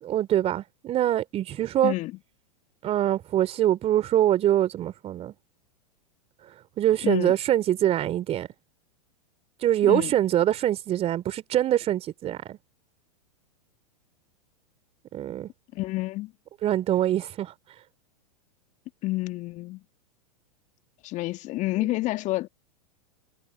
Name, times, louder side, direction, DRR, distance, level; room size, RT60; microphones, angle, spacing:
voice 1, 0.0-1.9 2.8-5.3 6.8-8.5 9.6-12.6 15.1-15.5 16.6-17.5 21.8-21.9, right 12 dB, 30° right, 3.1 m, -24 dB
voice 2, 9.8-10.1 15.7-16.3 19.0-19.8 21.0-22.5, left 18 dB, 40° left, 1.8 m, -29 dB
figure-of-eight pair, 100°, 20 cm